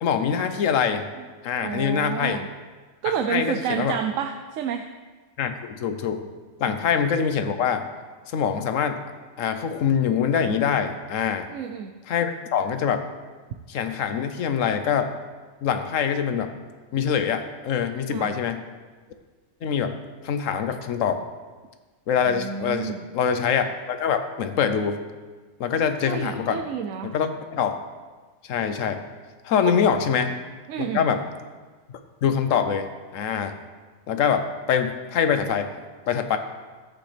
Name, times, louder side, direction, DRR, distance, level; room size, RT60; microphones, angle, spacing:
voice 1, 0.0-1.1 1.4-2.4 3.0-4.0 5.4-6.2 6.6-7.9 8.3-9.0 9.4-11.5 12.1-13.0 13.7-15.1 15.6-16.5 16.9-18.6 19.6-19.9 20.2-21.2 22.1-25.0 25.6-26.6 27.1-27.8 28.5-29.0 29.4-30.3 30.9-31.2 32.2-33.6 34.1-35.7 36.1-36.4, left 7 dB, 80° left, 8 dB, 1.1 m, -24 dB
voice 2, 1.6-2.5 3.0-4.9 6.7-6.8 11.5-11.9 18.1-18.4 22.3-23.0 26.1-27.2 29.6-29.8 30.7-31.0, right 8 dB, 90° right, 6 dB, 1.0 m, -29 dB
14.0 x 8.2 x 3.3 m, 1.4 s
omnidirectional pair, 1.3 m